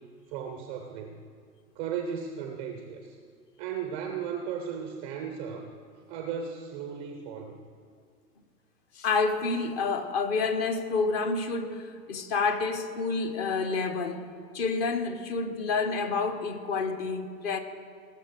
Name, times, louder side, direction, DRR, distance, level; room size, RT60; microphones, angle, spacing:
voice 1, 0.3-1.2 1.8-3.2 3.6-5.7 6.1-7.6, right 7 dB, 15° right, 0.4 m, -36 dB
voice 2, 9.0-14.2 14.5-17.6, left 4 dB, 40° left, 1.2 m, -29 dB
18.5 x 6.9 x 6.2 m
hypercardioid pair, 115°, 49 cm